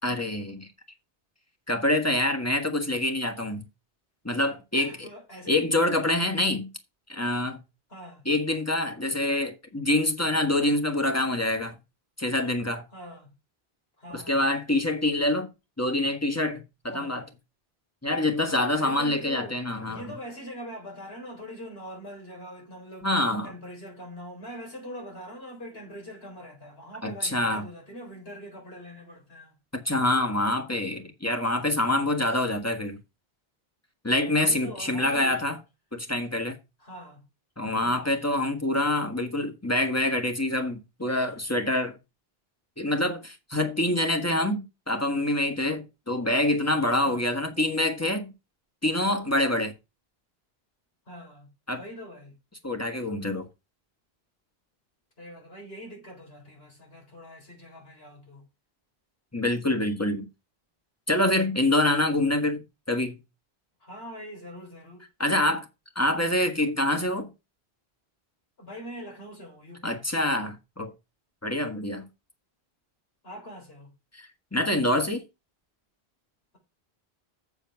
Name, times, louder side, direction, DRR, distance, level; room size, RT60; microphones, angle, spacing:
voice 1, 0.0-0.7 1.7-3.6 4.2-5.1 5.5-6.7 7.1-7.6 8.2-11.7 12.2-12.8 14.1-15.5 15.8-17.2 18.0-20.0 23.0-23.5 27.0-27.7 29.7-33.0 34.0-35.6 35.9-36.6 37.6-42.0 42.8-48.3 48.8-49.7 51.7-51.8 52.6-53.4 59.3-60.3 61.1-63.2 65.2-65.7 65.9-67.3 69.8-70.9 71.4-72.1 74.1-75.2, left 1 dB, 15° left, 1.6 m, -26 dB
voice 2, 4.7-5.7 7.9-8.3 12.9-13.3 14.0-14.4 16.9-17.2 18.7-23.1 23.4-29.5 34.1-35.4 36.8-37.2 37.8-38.2 47.0-47.4 51.1-52.3 55.2-58.4 63.8-65.1 68.6-70.0 73.2-73.9, equal, 75° left, 4.3 m, -43 dB
7.2 x 6.8 x 5.9 m
omnidirectional pair, 1.0 m